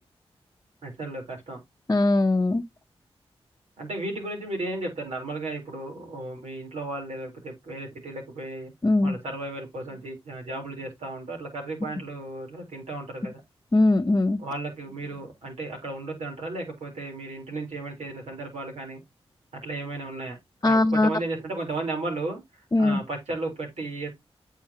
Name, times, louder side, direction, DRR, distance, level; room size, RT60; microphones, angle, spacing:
voice 1, 0.8-1.6 3.8-8.7 9.0-13.4 14.4-19.0 19.5-20.4 20.6-24.1, right 2 dB, 80° right, 3.8 m, -34 dB
voice 2, 1.9-2.6 8.8-9.1 13.7-14.4 20.6-21.1 22.7-23.0, left 2 dB, 25° left, 0.9 m, -20 dB
8.8 x 5.6 x 2.9 m
cardioid pair, 50°, 11 cm